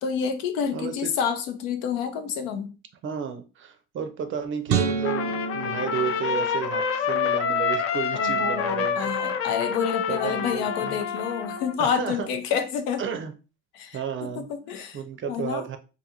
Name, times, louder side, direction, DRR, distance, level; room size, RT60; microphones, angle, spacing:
voice 1, 0.0-2.7 8.1-13.0 13.7-15.0 15.3-15.7, left 7 dB, 75° left, 0.7 m, -28 dB
voice 2, 0.7-1.1 3.0-9.1 10.1-11.0 11.8-12.3 13.0-13.3 13.9-14.5 14.9-15.8, right 7 dB, 35° right, 0.5 m, -32 dB
sound 1, 4.7-7.0, right 6 dB, 85° right, 0.6 m, -29 dB
Trumpet, 5.0-11.8, left 6 dB, 40° left, 0.4 m, -27 dB
2.6 x 2.5 x 2.7 m
supercardioid pair, 95°, 36 cm